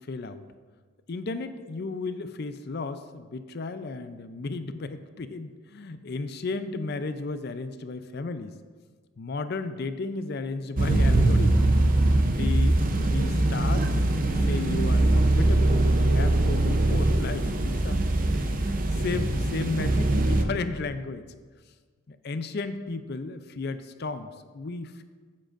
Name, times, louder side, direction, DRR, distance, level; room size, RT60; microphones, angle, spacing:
voice 1, 0.1-0.4 1.1-8.5 9.2-11.7 12.4-13.9 14.5-18.0 18.6-21.3 22.1-25.0, left 3 dB, 50° left, 10 dB, 0.5 m, -34 dB
sound 1, 10.8-20.4, right 2 dB, 40° right, 0.7 m, -22 dB
15.0 x 7.5 x 2.5 m, 1.5 s
head